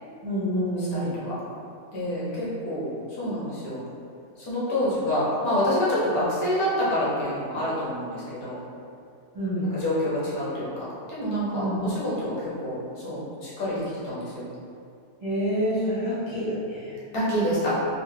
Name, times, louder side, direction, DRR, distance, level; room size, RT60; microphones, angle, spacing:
voice 1, 0.2-1.2 2.2-2.4 9.3-9.7 11.6-11.8 15.2-17.0, equal, 20° right, -13 dB, 0.9 m, -28 dB
voice 2, 0.8-1.4 1.9-3.8 4.4-8.6 9.7-14.5 15.8-15.9 17.1-17.7, equal, 70° left, -9 dB, 1.4 m, -27 dB
3.9 x 2.3 x 3.2 m, 2.4 s
omnidirectional pair, 1.7 m